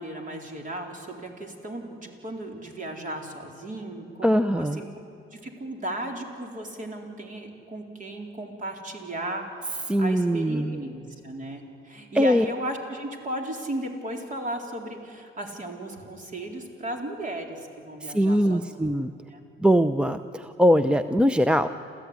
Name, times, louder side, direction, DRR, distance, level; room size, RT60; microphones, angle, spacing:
voice 1, 0.0-4.9 5.3-18.7 19.3-19.4, right 1 dB, 40° right, 3 dB, 4.0 m, -35 dB
voice 2, 4.2-4.8 9.9-10.8 12.1-12.4 18.0-19.1 19.6-21.7, equal, 5° right, 11 dB, 0.6 m, -22 dB
28.5 x 14.0 x 9.6 m, 2.8 s
cardioid pair, 90°, 20 cm